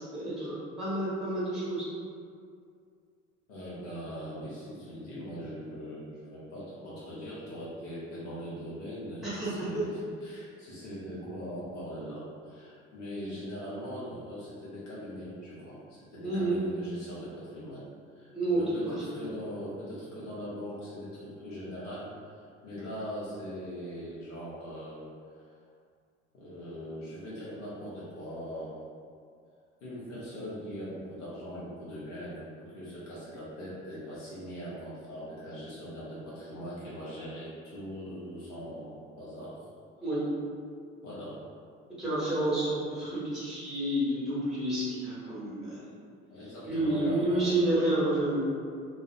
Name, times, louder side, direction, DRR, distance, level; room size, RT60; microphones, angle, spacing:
voice 1, 0.1-1.8 9.2-9.8 16.2-16.6 18.3-18.6 19.1-19.2 40.0-40.2 42.0-45.8 46.6-48.4, right 1 dB, ahead, -10 dB, 1.0 m, -29 dB
voice 2, 3.5-17.8 18.1-25.0 25.3-25.5 26.3-28.8 29.8-39.6 40.0-40.1 41.0-41.4 46.3-47.8, equal, 70° left, -9 dB, 0.7 m, -41 dB
2.3 x 2.1 x 2.6 m, 2.2 s
figure-of-eight pair, 60°, 37 cm